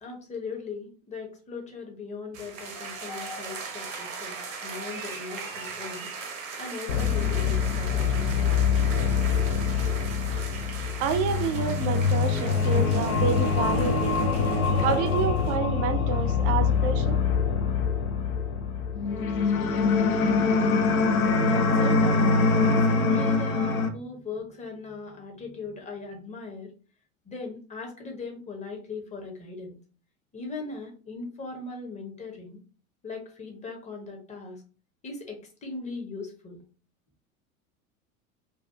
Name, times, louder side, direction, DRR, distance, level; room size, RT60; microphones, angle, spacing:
voice 1, 0.0-6.1 6.6-8.9 21.0-26.7 27.2-29.8 30.3-32.6 33.0-34.6 35.0-36.6, left 3 dB, 15° left, 0.7 m, -39 dB
sound 1, 2.3-15.6, right 4 dB, 65° right, 0.8 m, -39 dB
sound 2, 6.9-23.9, left 5 dB, 80° left, 0.5 m, -24 dB
voice 2, 11.0-14.2 14.8-17.2, right 6 dB, 40° right, 0.4 m, -29 dB
2.7 x 2.3 x 2.2 m
figure-of-eight pair, 80°, 42 cm